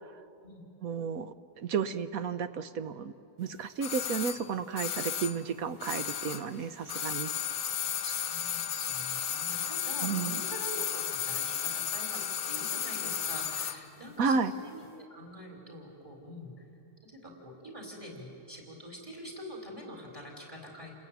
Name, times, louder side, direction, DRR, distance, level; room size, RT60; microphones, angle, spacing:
voice 1, 0.8-3.1 3.4-7.3 10.0-10.4 14.2-14.5, right 6 dB, 65° right, 11 dB, 1.1 m, -32 dB
sound 1, 3.8-6.6 6.8-13.8 14.1-14.2, left 8 dB, 60° left, 1.4 m, -34 dB
voice 2, 8.0-16.7 17.0-20.9, equal, 15° right, 0 dB, 5.3 m, -45 dB
29.0 x 20.5 x 9.3 m, 2.7 s
omnidirectional pair, 1.8 m